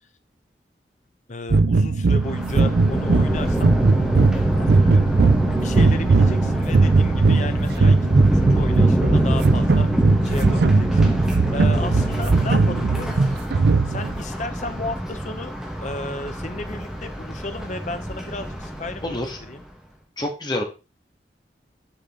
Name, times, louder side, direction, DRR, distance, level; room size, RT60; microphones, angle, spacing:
voice 1, 1.3-3.7 4.6-9.9 10.2-11.0 11.5-13.2 13.8-15.5 15.8-19.6, left 2 dB, 45° left, 8 dB, 0.8 m, -34 dB
sound 1, 1.5-14.2, right 3 dB, 70° right, 0.5 m, -19 dB
Thunder, 2.2-19.6, equal, ahead, 1.3 m, -25 dB
voice 2, 19.0-19.4 20.2-20.6, left 1 dB, 25° left, 1 dB, 1.7 m, -27 dB
7.3 x 5.4 x 3.7 m, 0.30 s
head